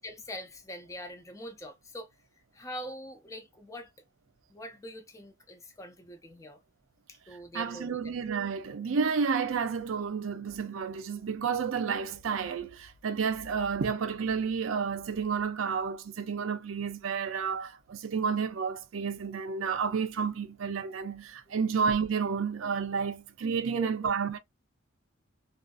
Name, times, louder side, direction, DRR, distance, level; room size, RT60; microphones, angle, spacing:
voice 1, 0.0-2.1 2.5-3.9 4.5-6.6 7.1-8.1 21.7-21.8 23.7-24.1, equal, 15° left, 0.4 m, -43 dB
voice 2, 7.5-24.4, right 6 dB, 80° right, 0.5 m, -31 dB
2.5 x 2.3 x 2.3 m
head